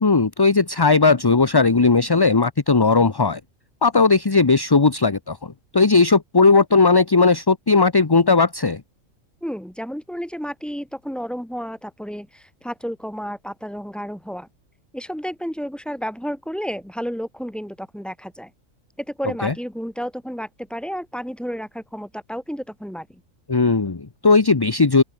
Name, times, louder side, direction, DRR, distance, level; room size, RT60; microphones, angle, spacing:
voice 1, 0.0-3.4 3.8-5.4 5.7-8.8 19.4-19.5 23.5-25.0, left 4 dB, 20° left, 0.8 m, -17 dB
voice 2, 9.4-14.5 14.9-18.5 19.0-23.2, equal, ahead, 4.7 m, -31 dB
open air
omnidirectional pair, 1.4 m